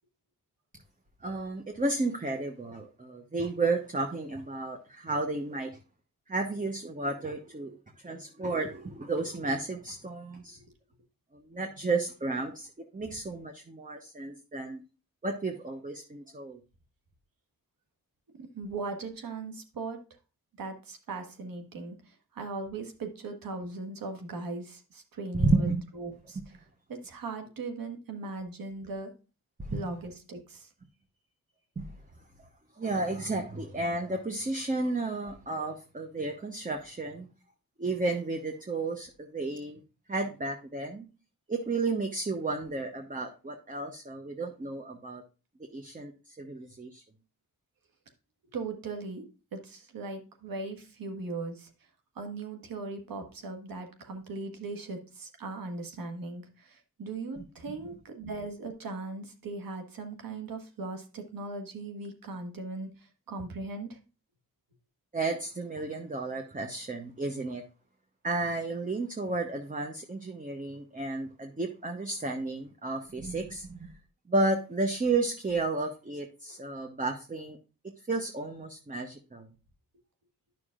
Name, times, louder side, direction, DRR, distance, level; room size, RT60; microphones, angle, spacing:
voice 1, 1.2-5.7 6.3-10.6 11.3-12.7 12.9-14.8 15.2-16.6 25.3-25.8 29.6-29.8 31.8-31.9 32.8-37.3 37.8-39.8 40.1-41.1 41.5-45.2 45.7-46.1 46.4-47.0 57.4-57.5 65.1-67.6 68.2-73.9 74.3-77.6 78.1-79.5, right 3 dB, 25° right, 4 dB, 1.0 m, -32 dB
voice 2, 18.4-20.0 20.6-21.9 22.3-25.7 26.0-26.4 26.9-29.1 29.7-30.7 48.5-49.2 49.5-51.7 52.2-62.9 63.3-64.0, right 3 dB, 80° right, 4 dB, 1.5 m, -38 dB
9.7 x 6.0 x 2.5 m, 0.32 s
cardioid pair, 50°, 35 cm